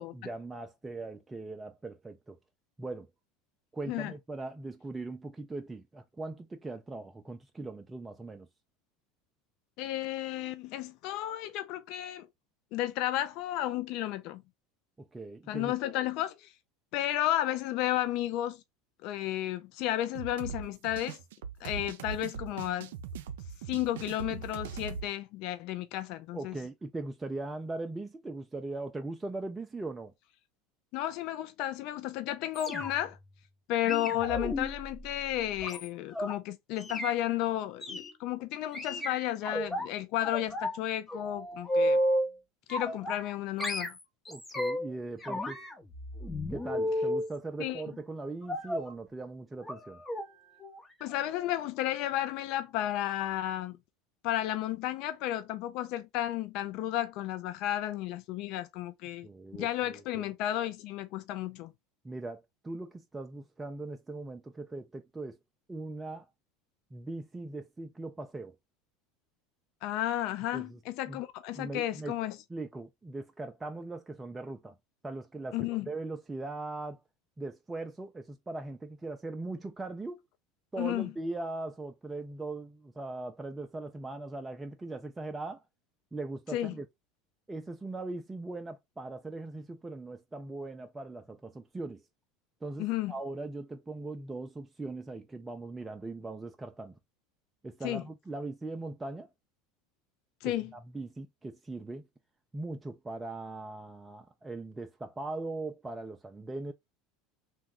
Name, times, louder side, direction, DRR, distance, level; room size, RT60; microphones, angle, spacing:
voice 1, 0.0-2.4 2.8-3.1 3.7-8.5 15.0-15.7 21.6-21.7 26.3-30.1 44.3-45.6 46.5-50.0 59.2-60.3 62.0-65.4 65.7-66.3 66.9-68.5 70.5-70.8 71.1-71.2 71.5-72.2 72.5-74.7 75.0-75.6 75.9-77.0 77.4-80.2 80.7-85.6 86.1-86.9 87.5-92.0 92.6-96.9 97.6-99.3 100.4-102.1 102.5-106.7, right 2 dB, 15° right, 0.4 m, -40 dB
voice 2, 9.8-12.3 12.7-14.4 15.5-16.5 16.9-18.6 19.0-21.2 21.6-22.9 23.7-26.5 30.9-33.2 33.7-42.0 42.7-44.0 47.6-47.8 51.0-53.8 54.2-59.3 59.6-61.7 69.8-72.4 75.5-75.9 80.8-81.1 86.5-86.8 92.8-93.1 97.8-98.0 100.4-100.7, left 13 dB, 60° left, 0.4 m, -33 dB
sound 1, 20.2-25.1, right 6 dB, 80° right, 0.4 m, -40 dB
sound 2, 32.5-33.2 33.8-36.3 36.8-37.1 37.8-38.1 38.7-39.9 40.2-40.8 41.1-42.3 42.7-43.3 43.6-44.9 45.2-47.3 48.5-48.9 49.6-49.8 50.1-50.3 50.6-50.8 51.1-51.2, equal, 15° left, 0.8 m, -33 dB
2.9 x 2.2 x 3.6 m
hypercardioid pair, 90°, 0 cm